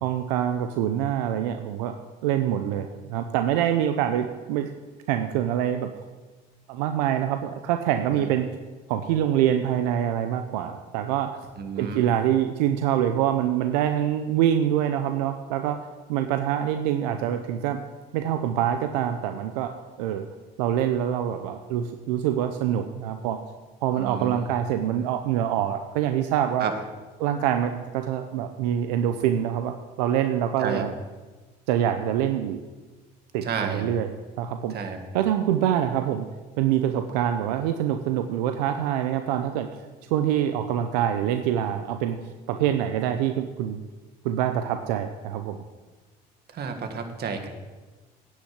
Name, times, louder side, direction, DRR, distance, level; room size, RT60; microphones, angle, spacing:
voice 1, 0.0-1.9 2.2-4.7 5.1-5.9 6.7-8.5 8.9-11.4 11.8-15.8 16.1-17.8 18.1-19.7 20.0-20.3 20.6-23.4 23.8-26.7 27.2-30.9 31.7-32.6 33.3-34.1 34.4-34.7 35.1-36.3 36.6-39.7 40.1-43.8 44.2-45.6, right 10 dB, 90° right, 7 dB, 0.6 m, -25 dB
voice 2, 11.6-12.0 24.0-24.4 26.6-26.7 30.6-30.8 33.4-33.9 34.7-35.0 46.5-47.5, right 6 dB, 55° right, 6 dB, 1.8 m, -31 dB
9.9 x 6.5 x 7.9 m, 1.3 s
supercardioid pair, 80°, 20 cm